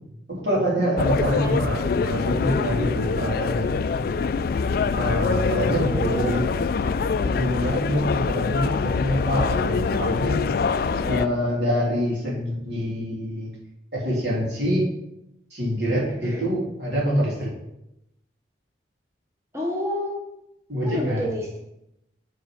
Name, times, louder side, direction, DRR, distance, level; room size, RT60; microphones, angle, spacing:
voice 1, 0.3-3.7 4.9-6.4 7.2-10.4 11.0-13.5 13.9-14.8 15.5-17.5 20.7-21.3, equal, 75° right, -5 dB, 3.2 m, -25 dB
sound 1, 1.0-11.3, left 5 dB, 55° left, 0.3 m, -24 dB
voice 2, 1.3-1.6 5.3-6.4 16.0-16.4 19.5-20.2 20.8-21.6, equal, 15° right, -1 dB, 1.0 m, -30 dB
9.3 x 4.2 x 4.9 m, 0.83 s
head